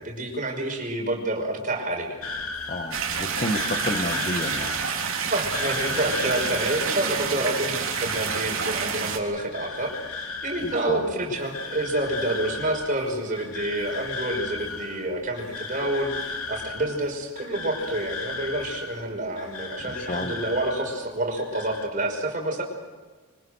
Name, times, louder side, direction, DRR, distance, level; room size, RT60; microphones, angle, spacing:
voice 1, 0.0-2.2 5.3-22.6, right 1 dB, 35° right, 2 dB, 5.7 m, -28 dB
sound 1, 2.2-21.1 21.4-21.9, left 4 dB, 85° left, 2.8 m, -36 dB
voice 2, 2.7-4.8 10.6-11.1 19.9-20.4, left 1 dB, 35° left, 7 dB, 1.6 m, -31 dB
sound 2, 2.9-9.2, right 6 dB, 65° right, 3.6 m, -28 dB
25.5 x 25.0 x 6.5 m, 1.3 s
head